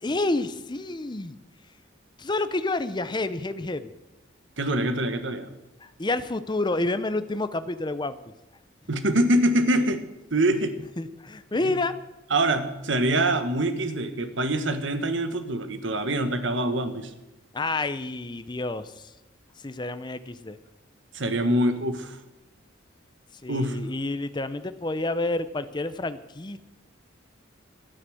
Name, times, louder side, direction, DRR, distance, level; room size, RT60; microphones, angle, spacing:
voice 1, 0.0-1.4 2.2-3.9 5.8-8.2 11.0-11.9 17.5-19.1 19.6-20.6 23.4-26.6, left 2 dB, 20° left, 12 dB, 0.6 m, -29 dB
voice 2, 4.6-5.5 8.9-10.0 10.3-10.7 12.3-17.1 21.1-22.2 23.5-23.8, right 1 dB, 70° right, 10 dB, 1.4 m, -24 dB
12.5 x 9.8 x 7.7 m, 0.98 s
head